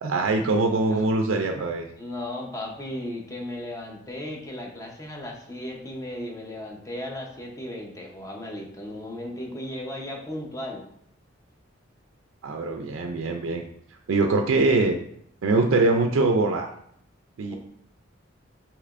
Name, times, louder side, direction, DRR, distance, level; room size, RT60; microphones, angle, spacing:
voice 1, 0.0-1.9 12.4-13.6 14.1-15.0 15.4-16.7 17.4-17.6, right 3 dB, 85° right, 4 dB, 0.4 m, -23 dB
voice 2, 2.0-10.8 17.5-17.6, left 1 dB, 15° left, 0 dB, 0.8 m, -36 dB
6.5 x 2.9 x 2.5 m, 0.69 s
head